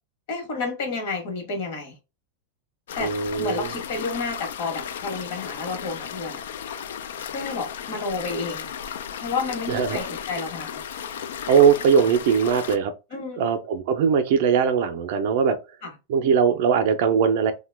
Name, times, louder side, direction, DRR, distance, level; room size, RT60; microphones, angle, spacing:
voice 1, 0.3-2.0 2.9-3.1 3.4-6.4 7.3-8.7 9.2-10.8 13.1-13.5 15.8-15.9, left 4 dB, 50° left, 1.0 m, -30 dB
sound 1, 2.9-12.8, left 8 dB, 85° left, 0.3 m, -35 dB
voice 2, 3.0-3.7 9.7-10.1 11.5-12.9 13.4-15.6 16.1-17.5, right 7 dB, 50° right, 0.4 m, -20 dB
2.8 x 2.1 x 3.2 m
supercardioid pair, 180°, 0 cm